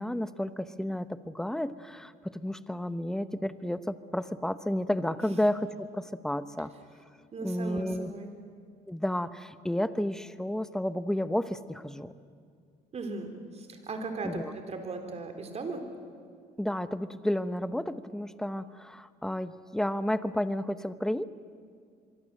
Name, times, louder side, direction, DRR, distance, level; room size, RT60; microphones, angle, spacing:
voice 1, 0.0-6.7 7.4-8.1 8.9-12.1 14.2-14.5 16.6-21.3, left 1 dB, 5° left, 13 dB, 0.9 m, -31 dB
voice 2, 7.3-8.3 12.9-15.8, right 3 dB, 40° right, 5 dB, 3.9 m, -37 dB
26.0 x 23.0 x 7.8 m, 2.2 s
cardioid pair, 110°, 17 cm